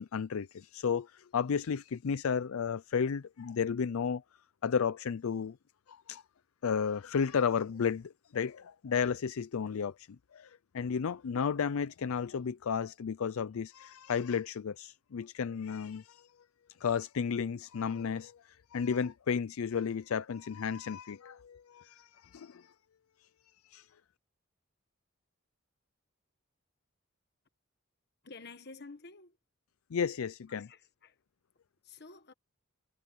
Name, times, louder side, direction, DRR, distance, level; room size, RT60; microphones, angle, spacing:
voice 1, 0.0-4.2 4.6-5.6 5.9-6.2 6.6-16.3 16.8-22.7 23.7-23.9 29.9-30.7, left 6 dB, 80° left, 0.4 m, -33 dB
voice 2, 28.2-29.4 30.5-31.2 31.8-32.3, left 3 dB, 50° left, 1.3 m, -50 dB
head